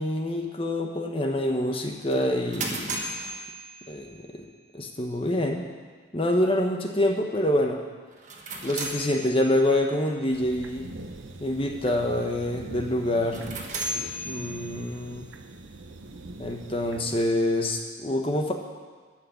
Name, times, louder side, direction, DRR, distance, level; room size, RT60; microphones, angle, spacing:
voice 1, 0.0-3.0 3.9-4.5 4.7-5.7 6.1-7.8 8.6-10.9 11.4-13.4 14.3-15.3 16.4-18.5, left 1 dB, 30° left, 2 dB, 1.0 m, -26 dB
sound 1, 2.1-4.3 8.1-9.8 13.2-15.0, right 1 dB, 40° right, 1.3 m, -36 dB
sound 2, 10.3-17.3, right 2 dB, 85° right, 0.8 m, -42 dB
12.0 x 6.2 x 8.3 m, 1.5 s
head